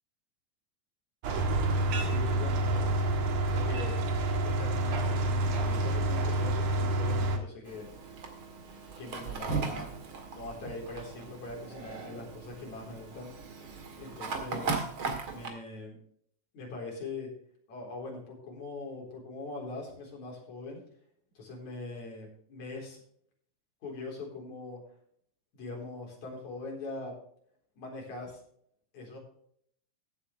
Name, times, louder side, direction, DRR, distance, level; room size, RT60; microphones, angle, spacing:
sound 1, 1.2-7.4, right 1 dB, 65° right, 2.7 m, -28 dB
voice 1, 1.9-3.1 3.5-4.0 4.4-8.4 9.0-9.9 10.3-13.3 14.0-14.9 15.3-16.0 16.5-17.3 17.7-20.8 21.4-23.0 23.8-24.8 25.5-27.1 27.8-28.4 28.9-29.2, left 3 dB, 65° left, -1 dB, 5.4 m, -42 dB
Fire, 7.6-15.5, right 4 dB, 45° right, 2.4 m, -38 dB
15.5 x 8.8 x 3.3 m, 0.64 s
omnidirectional pair, 3.5 m